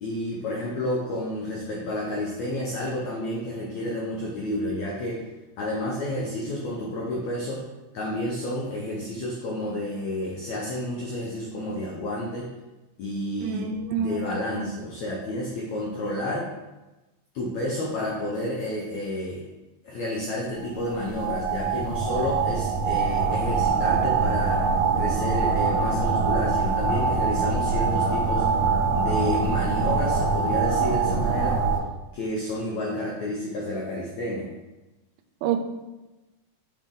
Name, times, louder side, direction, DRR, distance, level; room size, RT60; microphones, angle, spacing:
voice 1, 0.0-5.3 5.6-7.6 7.9-12.5 13.0-13.7 13.9-16.5 17.3-19.4 19.8-24.7 24.9-28.5 28.9-31.6 32.1-34.5, left 1 dB, 90° left, -3 dB, 1.5 m, -30 dB
voice 2, 13.4-14.2 14.6-14.7 35.4-35.6, right 7 dB, 80° right, 6 dB, 2.3 m, -27 dB
sound 1, 20.7-31.8, right 5 dB, 65° right, 2.0 m, -24 dB
6.7 x 5.1 x 3.7 m, 1.1 s
omnidirectional pair, 4.5 m